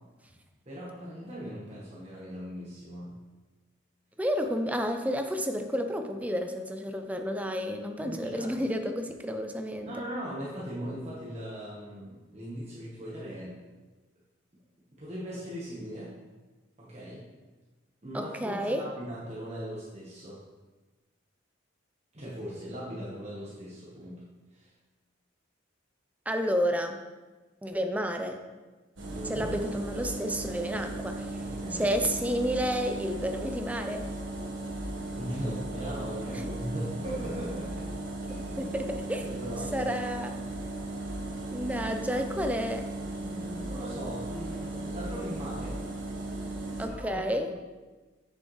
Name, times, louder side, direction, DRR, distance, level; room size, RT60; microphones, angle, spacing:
voice 1, 0.6-3.1 8.0-8.7 9.8-13.6 15.0-16.1 16.8-17.2 18.0-20.4 22.1-24.2 24.5-24.7 29.1-29.5 31.4-32.0 35.1-37.9 38.3-38.7 39.2-39.9 40.2-40.3 41.8-41.9 43.1-45.8 46.8-47.5, equal, 35° right, -8 dB, 1.4 m, -39 dB
voice 2, 4.2-9.9 18.1-18.8 26.3-27.0 27.6-28.4 29.2-31.2 31.8-34.1 36.3-36.5 38.6-39.2 39.7-40.4 41.5-42.9 46.8-47.5, equal, 10° right, 5 dB, 0.5 m, -30 dB
sound 1, 29.0-46.9, right 2 dB, 75° right, 1.5 m, -37 dB
7.9 x 6.8 x 3.3 m, 1.2 s
head